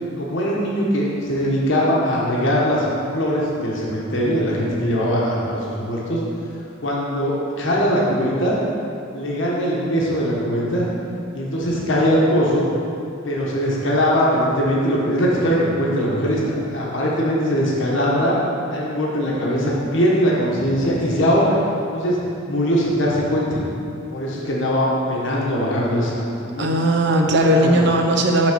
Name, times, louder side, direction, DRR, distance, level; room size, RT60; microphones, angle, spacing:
voice 1, 0.2-2.8 3.1-6.2 6.8-8.6 9.1-10.9 11.3-12.7 13.2-18.4 18.7-21.6 21.9-22.2 22.5-23.6 24.1-26.7 27.5-27.8, equal, 65° left, -4 dB, 1.2 m, -21 dB
voice 2, 26.6-28.5, right 1 dB, 60° right, 1 dB, 0.7 m, -17 dB
6.2 x 4.2 x 5.9 m, 2.6 s
head